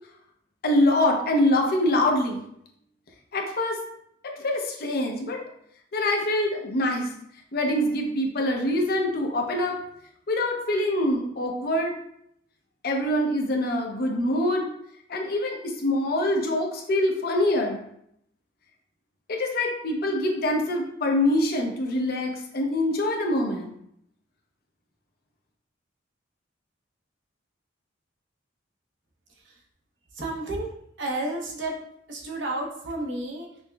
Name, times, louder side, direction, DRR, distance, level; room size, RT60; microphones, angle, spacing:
voice 1, 0.6-2.4 3.3-3.8 4.2-5.4 5.9-7.2 7.5-9.8 10.3-11.9 12.8-14.7 15.1-17.8 19.3-23.7, left 1 dB, 50° left, 1 dB, 0.6 m, -24 dB
voice 2, 29.3-29.6 30.1-30.7 31.0-31.8 32.1-33.6, right 2 dB, 70° right, 0 dB, 0.7 m, -32 dB
5.4 x 2.1 x 2.2 m, 0.73 s
head